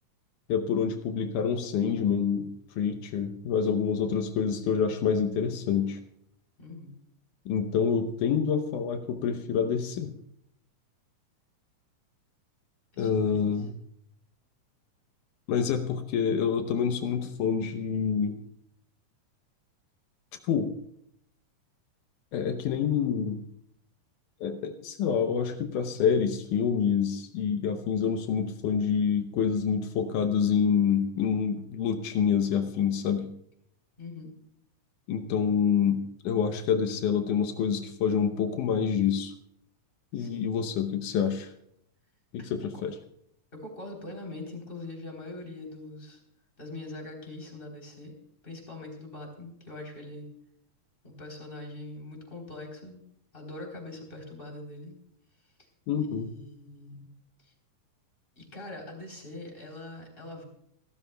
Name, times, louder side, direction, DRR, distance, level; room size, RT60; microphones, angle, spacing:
voice 1, 0.5-2.5 2.8-6.0 7.5-10.2 13.0-13.7 15.5-18.4 20.4-20.7 22.3-23.4 24.4-33.3 35.1-39.3 40.1-41.5 42.3-43.0 55.9-56.3, left 7 dB, 80° left, 7 dB, 2.4 m, -27 dB
voice 2, 6.6-6.9 12.9-13.5 34.0-34.3 40.1-40.5 42.4-42.8 43.5-46.2 46.6-48.2 48.4-50.3 51.0-53.0 53.3-55.0 55.4-55.7 56.1-57.1 57.4-57.5 58.4-60.4, left 2 dB, 15° left, 1 dB, 3.5 m, -43 dB
29.5 x 12.5 x 2.3 m, 0.72 s
omnidirectional pair, 3.6 m